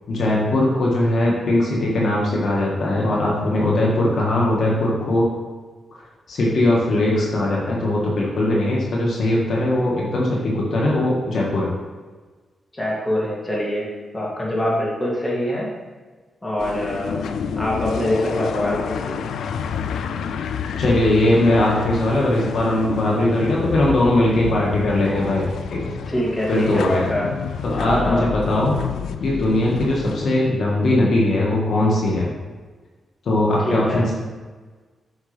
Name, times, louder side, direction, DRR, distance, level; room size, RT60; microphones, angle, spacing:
voice 1, 0.1-5.3 6.3-11.7 20.8-26.0 26.5-27.0 27.6-28.7 29.2-32.3 33.3-34.1, left 1 dB, 70° left, -3 dB, 1.7 m, -20 dB
voice 2, 12.7-15.7 16.4-17.2 17.6-19.2 26.1-27.3 27.7-28.3 33.6-34.1, left 1 dB, 20° left, -5 dB, 2.4 m, -24 dB
sound 1, 16.6-30.3, left 7 dB, 85° left, 0.3 m, -29 dB
8.1 x 6.4 x 3.4 m, 1.3 s
cardioid pair, 100°, 0 cm